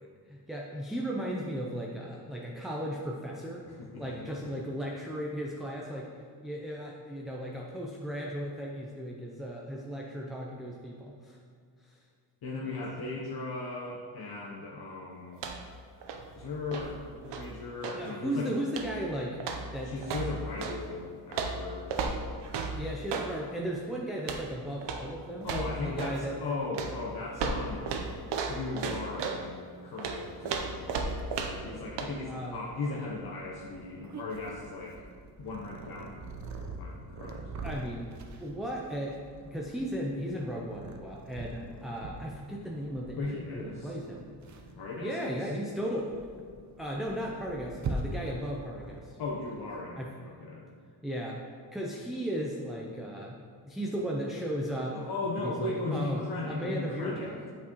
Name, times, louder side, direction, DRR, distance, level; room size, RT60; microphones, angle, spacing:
voice 1, 0.0-3.6 4.0-6.1 6.4-11.4 11.8-12.0 12.6-12.8 17.9-19.4 19.7-19.9 20.7-20.8 22.7-25.6 25.8-26.5 32.3-32.6 37.6-38.1 38.4-44.3 45.0-46.1 46.8-49.2 50.0-50.1 51.0-51.4 51.7-53.4 53.7-55.0 55.4-57.4, equal, ahead, -3 dB, 0.4 m, -36 dB
voice 2, 3.7-4.3 12.4-15.5 16.3-18.5 19.8-22.0 22.6-22.8 25.4-27.9 28.5-35.0 35.4-37.4 43.2-44.0 44.7-45.4 49.2-50.7 54.9-57.3, left 3 dB, 60° left, -3 dB, 0.9 m, -37 dB
sound 1, 15.3-18.1 18.7-19.1 19.4-20.8 21.3-23.3 24.2-24.5 24.8-25.1 25.4-26.2 26.7-29.4 30.0-31.7 32.0-32.1, right 4 dB, 80° right, 0.8 m, -35 dB
Purr, 31.1-49.8, right 3 dB, 45° right, 0.6 m, -44 dB
8.4 x 6.2 x 3.0 m, 2.2 s
wide cardioid pair, 145°, 42 cm